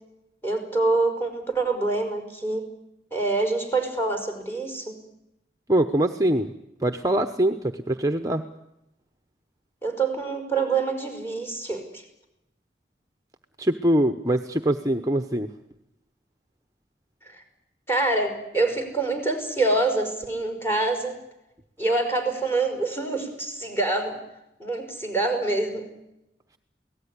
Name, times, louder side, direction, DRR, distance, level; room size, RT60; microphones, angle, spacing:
voice 1, 0.4-2.6 3.1-5.0 9.8-12.0 17.3-17.4 17.9-21.2 21.8-24.2 24.6-25.9, right 3 dB, 15° left, 5 dB, 5.5 m, -26 dB
voice 2, 5.7-6.5 6.8-8.4 13.6-15.5, right 1 dB, 20° right, 7 dB, 0.9 m, -23 dB
28.5 x 18.5 x 9.9 m, 0.88 s
head